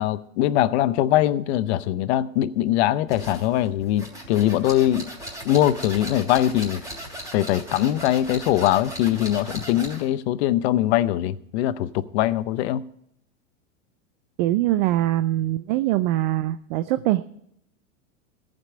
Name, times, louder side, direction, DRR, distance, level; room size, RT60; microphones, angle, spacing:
voice 1, 0.0-5.1 5.4-6.8 7.3-12.8, left 13 dB, 55° left, 0.7 m, -22 dB
sound 1, 3.1-10.1, right 1 dB, 10° right, 3.0 m, -38 dB
voice 2, 14.4-17.2, right 15 dB, 40° right, 0.4 m, -23 dB
14.5 x 5.3 x 8.6 m
supercardioid pair, 135°, 40 cm